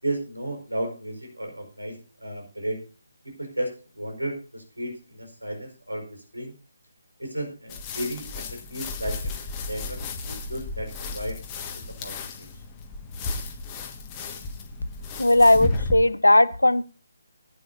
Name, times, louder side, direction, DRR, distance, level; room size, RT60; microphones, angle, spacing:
voice 1, 0.0-2.8 3.4-6.5 7.2-9.2 9.7-11.4 11.9-12.5, right 1 dB, 85° right, 4 dB, 5.0 m, -33 dB
sound 1, 7.7-16.0, left 3 dB, 20° left, 1.6 m, -34 dB
voice 2, 15.2-16.8, left 1 dB, 80° left, 15 dB, 0.9 m, -17 dB
18.5 x 9.5 x 2.7 m, 0.35 s
figure-of-eight pair, 145°, 0 cm